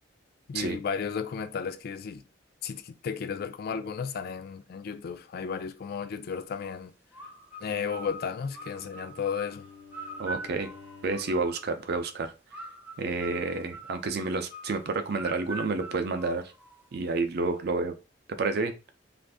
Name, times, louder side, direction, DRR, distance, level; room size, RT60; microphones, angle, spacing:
voice 1, 0.5-2.2 2.6-6.9 7.6-9.7, left 6 dB, 55° left, 0.3 m, -34 dB
sound 1, 7.1-11.9 12.5-17.0, right 1 dB, 10° right, 0.6 m, -43 dB
Bowed string instrument, 8.0-11.6, left 5 dB, 75° left, 1.1 m, -51 dB
voice 2, 10.2-10.7 11.0-12.3 13.0-16.4 16.9-17.9 18.3-18.7, right 3 dB, 55° right, 0.5 m, -29 dB
2.5 x 2.5 x 3.4 m
head